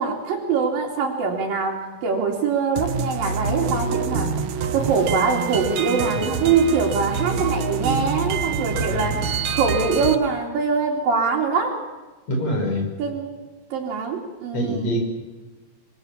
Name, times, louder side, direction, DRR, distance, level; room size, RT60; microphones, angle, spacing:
voice 1, 0.0-11.8 13.0-13.4 13.7-15.0, right 5 dB, 80° right, -4 dB, 4.7 m, -23 dB
sound 1, 2.8-10.1, right 5 dB, 65° right, 2.5 m, -26 dB
voice 2, 6.0-6.4 7.3-7.4 8.7-9.2 12.3-12.9 14.5-15.0, equal, 50° left, 3 dB, 7.2 m, -26 dB
25.5 x 24.0 x 7.3 m, 1.3 s
omnidirectional pair, 4.0 m